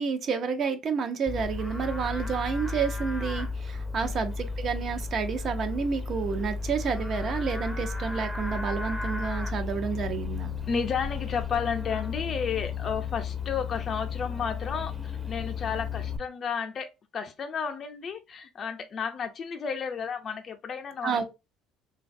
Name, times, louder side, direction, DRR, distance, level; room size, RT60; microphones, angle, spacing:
voice 1, 0.0-10.5 21.0-21.2, right 5 dB, 50° right, 0.6 m, -30 dB
Livestock farm animals working animals, 1.3-16.2, left 4 dB, ahead, 0.6 m, -33 dB
voice 2, 10.7-21.2, left 6 dB, 45° left, 0.5 m, -32 dB
3.0 x 2.3 x 2.5 m
supercardioid pair, 80°, 0 cm